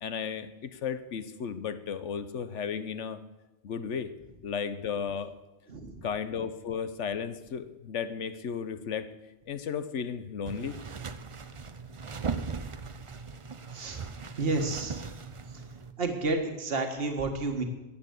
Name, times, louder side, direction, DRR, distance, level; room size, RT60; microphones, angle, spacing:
voice 1, 0.0-3.2 3.6-4.1 4.4-5.3 6.0-9.1 9.5-10.8, left 7 dB, 80° left, 12 dB, 1.2 m, -34 dB
voice 2, 5.7-6.1 13.7-14.0 14.4-15.0 15.5-15.6 16.0-17.6, right 3 dB, 55° right, 5 dB, 1.8 m, -31 dB
sound 1, 10.5-15.9, right 5 dB, 35° right, 0.6 m, -38 dB
14.0 x 9.1 x 8.2 m, 1.0 s
omnidirectional pair, 1.2 m